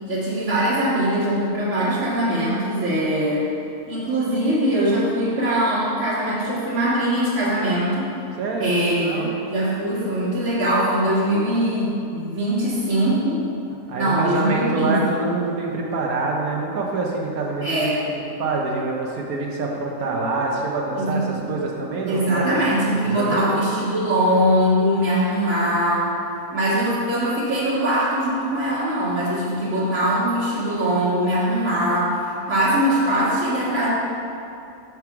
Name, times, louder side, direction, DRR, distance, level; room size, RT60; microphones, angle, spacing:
voice 1, 0.1-3.5 3.9-8.1 8.6-13.4 14.0-15.0 17.6-18.1 21.0-21.4 22.1-26.1 26.5-33.9, right 1 dB, 50° right, -12 dB, 1.9 m, -22 dB
voice 2, 8.4-9.4 13.9-22.6 23.0-23.6, right 3 dB, 70° right, -1 dB, 1.4 m, -26 dB
6.5 x 5.9 x 4.7 m, 2.7 s
omnidirectional pair, 1.6 m